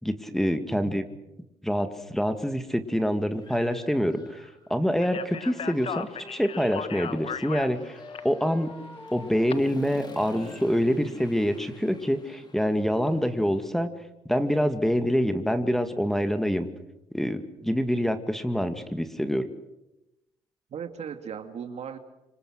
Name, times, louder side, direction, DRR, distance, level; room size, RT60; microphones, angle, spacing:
voice 1, 0.0-1.0 1.6-8.0 8.2-8.8 9.1-13.9 14.3-16.7 17.1-19.5, equal, 5° left, 9 dB, 2.1 m, -26 dB
Human voice / Motorcycle, 2.4-2.5 3.0-4.7 5.1-13.7, left 3 dB, 35° left, 4.1 m, -49 dB
Speech, 5.0-9.5, left 7 dB, 50° left, 1.5 m, -37 dB
Wind instrument woodwind instrument, 5.1-7.7 8.0-10.7, left 2 dB, 20° left, 5.9 m, -48 dB
voice 2, 20.7-22.0, right 7 dB, 60° right, 7 dB, 2.4 m, -37 dB
26.5 x 24.5 x 6.5 m, 0.93 s
supercardioid pair, 65°, 12 cm